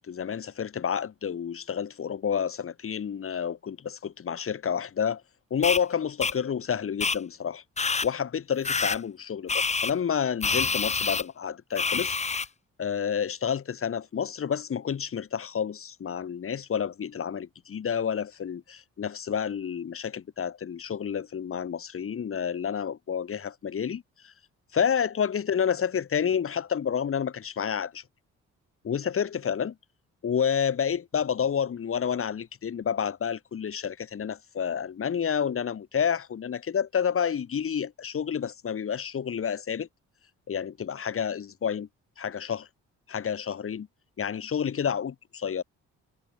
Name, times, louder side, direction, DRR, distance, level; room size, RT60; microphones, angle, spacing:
voice 1, 0.0-5.2 5.5-7.6 8.0-12.2 12.8-24.3 24.7-28.0 28.8-29.7 30.2-39.9 40.5-41.9 42.2-42.7 43.1-43.9 44.2-45.6, left 7 dB, 45° left, 2.1 m, -29 dB
sound 1, 5.6-5.8 6.2-6.3 7.0-7.2 7.8-8.1 8.6-9.0 9.5-9.9 10.4-11.2 11.8-12.5, left 5 dB, 20° left, 0.9 m, -27 dB
cardioid pair, 90°, 30 cm